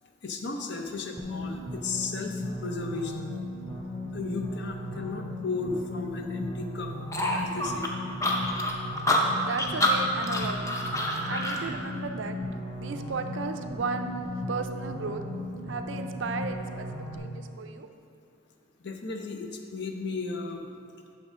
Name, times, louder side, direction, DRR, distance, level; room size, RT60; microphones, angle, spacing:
voice 1, 0.2-3.4 4.1-6.9 7.3-7.9 18.8-20.7, left 4 dB, 60° left, 4 dB, 0.7 m, -35 dB
sound 1, 1.2-17.2, left 1 dB, 30° left, 1.9 m, -36 dB
sound 2, 7.1-11.6, left 1 dB, 15° left, 0.6 m, -27 dB
voice 2, 9.4-10.8 11.3-12.4 12.8-14.2 14.5-15.2 15.7-17.9, right 4 dB, 70° right, 7 dB, 0.5 m, -35 dB
8.8 x 6.4 x 3.7 m, 2.4 s
head